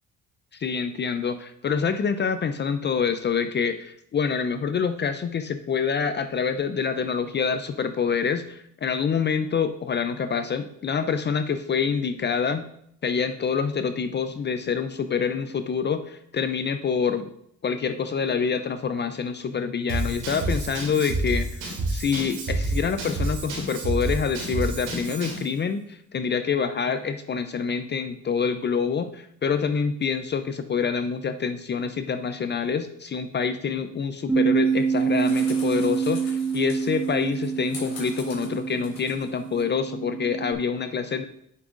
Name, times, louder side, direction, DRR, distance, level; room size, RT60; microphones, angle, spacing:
voice 1, 0.5-12.6 13.0-17.3 17.6-41.2, left 6 dB, 35° left, 9 dB, 0.5 m, -26 dB
Drum kit / Drum, 19.9-25.5, right 2 dB, 85° right, 2.6 m, -29 dB
Bass guitar, 34.3-40.5, right 6 dB, 10° right, 0.8 m, -26 dB
sound 1, 34.6-39.6, left 3 dB, 65° left, 3.0 m, -44 dB
8.5 x 6.9 x 2.5 m, 0.71 s
cardioid pair, 90°, 30 cm